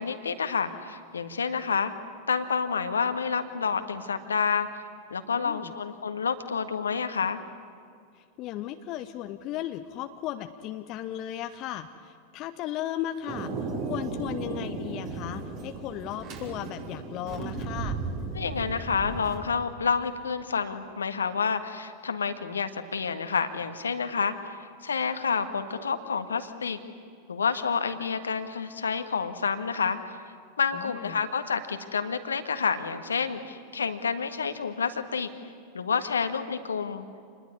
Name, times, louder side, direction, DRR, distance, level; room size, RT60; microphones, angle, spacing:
voice 1, 0.0-1.9 2.3-4.8 5.1-7.4 18.3-26.8 27.3-30.2 30.6-35.3 35.7-37.0, left 6 dB, 70° left, 9 dB, 1.7 m, -29 dB
voice 2, 5.3-5.7 8.1-13.5 13.8-18.0 30.7-31.2, left 12 dB, 40° left, 8 dB, 1.0 m, -36 dB
Thunder, 13.3-19.4, right 3 dB, 40° right, 5.3 m, -35 dB
27.5 x 20.5 x 9.9 m, 2.3 s
figure-of-eight pair, 90°, 0 cm